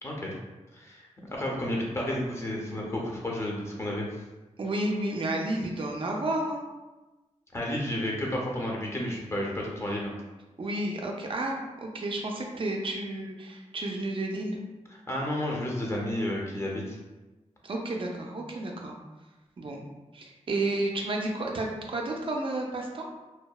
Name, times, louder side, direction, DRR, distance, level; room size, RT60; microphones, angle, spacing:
voice 1, 0.0-0.3 0.7-4.2 7.5-10.1 14.9-17.0, left 1 dB, 20° left, -2 dB, 0.5 m, -32 dB
voice 2, 4.6-6.6 10.6-14.6 17.6-19.0 19.6-19.8 20.1-23.1, right 2 dB, 45° right, 0 dB, 0.4 m, -31 dB
2.7 x 2.0 x 2.2 m, 1.1 s
wide cardioid pair, 125°, 12 cm